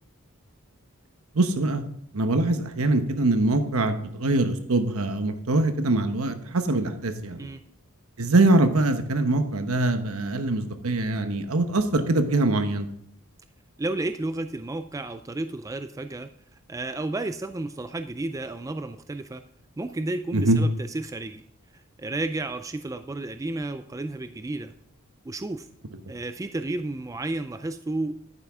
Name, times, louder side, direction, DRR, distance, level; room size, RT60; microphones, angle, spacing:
voice 1, 1.3-1.8 2.1-7.5 8.2-12.9 20.3-20.6, right 2 dB, 75° right, 8 dB, 1.0 m, -23 dB
voice 2, 13.8-16.3 16.7-19.4 19.8-21.4 21.7-24.7 25.3-25.7 26.1-28.2, right 2 dB, 15° right, 10 dB, 0.3 m, -32 dB
11.0 x 9.2 x 3.6 m, 0.71 s
head